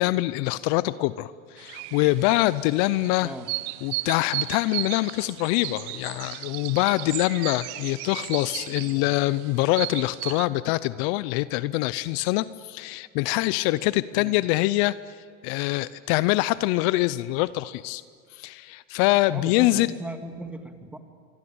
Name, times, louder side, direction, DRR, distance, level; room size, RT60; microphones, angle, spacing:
voice 1, 0.0-3.3 3.8-15.2 15.4-18.0 18.3-19.9, left 18 dB, 60° left, 17 dB, 0.8 m, -24 dB
sound 1, 1.6-10.5, right 20 dB, 60° right, 1.1 m, -35 dB
voice 2, 19.3-21.0, right 1 dB, 5° right, 7 dB, 2.2 m, -38 dB
26.0 x 24.0 x 8.8 m, 2.2 s
supercardioid pair, 125°, 37 cm